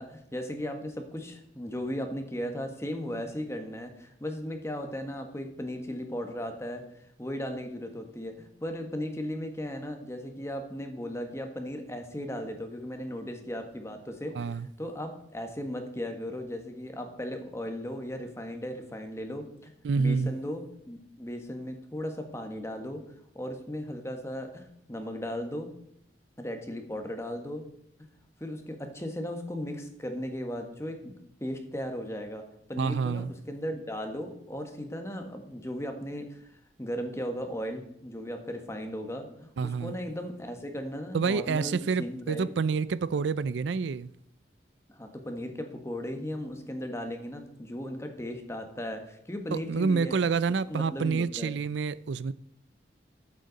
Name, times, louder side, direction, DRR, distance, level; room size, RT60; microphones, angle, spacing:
voice 1, 0.0-6.8 7.2-14.5 14.8-23.0 23.3-25.7 26.4-27.7 28.4-31.1 31.4-42.5 44.9-50.2 50.7-51.6, equal, 15° left, 1.4 m, -36 dB
voice 2, 14.3-14.7 19.8-20.3 32.8-33.3 39.6-39.9 41.1-44.1 49.5-52.3, right 5 dB, 85° right, 0.4 m, -28 dB
14.0 x 7.6 x 4.1 m
head